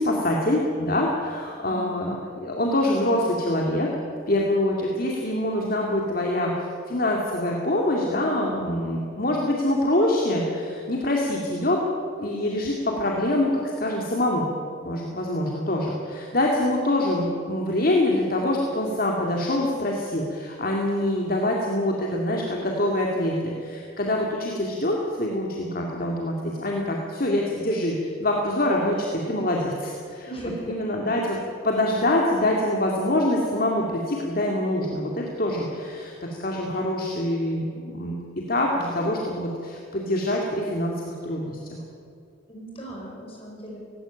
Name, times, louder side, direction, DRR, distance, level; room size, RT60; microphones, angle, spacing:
voice 1, 0.0-3.9 4.3-6.5 6.9-11.8 12.2-14.5 14.8-23.4 23.6-30.3 30.7-31.4 31.6-38.1 38.5-41.8, left 1 dB, 45° left, -1 dB, 2.3 m, -25 dB
voice 2, 30.3-30.8 42.5-43.8, right 1 dB, 30° left, -2 dB, 6.1 m, -37 dB
18.0 x 16.5 x 9.9 m, 2.3 s
head